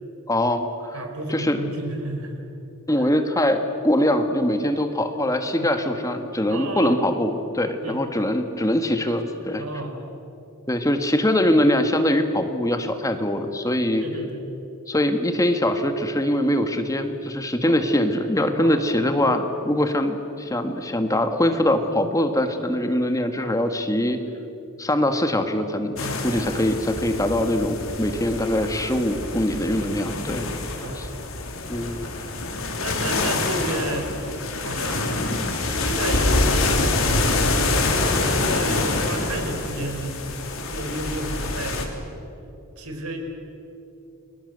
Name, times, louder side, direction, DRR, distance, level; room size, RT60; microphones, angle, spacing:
voice 1, 0.3-1.0 1.3-1.6 2.9-9.6 10.7-14.0 14.9-24.2 24.8-30.5 30.9-31.1 31.7-32.1, left 1 dB, 15° left, 7 dB, 1.6 m, -23 dB
voice 2, 0.9-2.4 3.0-3.1 5.6-5.8 6.5-7.0 7.8-8.0 9.6-10.0 14.0-14.4 17.6-17.8 18.5-18.8 26.0-26.3 30.8-31.1 32.7-34.1 34.5-35.1 35.6-40.3 40.7-41.8 42.8-43.2, right 1 dB, 90° right, 4 dB, 4.5 m, -31 dB
sound 1, 26.0-41.8, left 2 dB, 70° left, 3.3 m, -26 dB
29.5 x 22.5 x 8.0 m, 2.9 s
head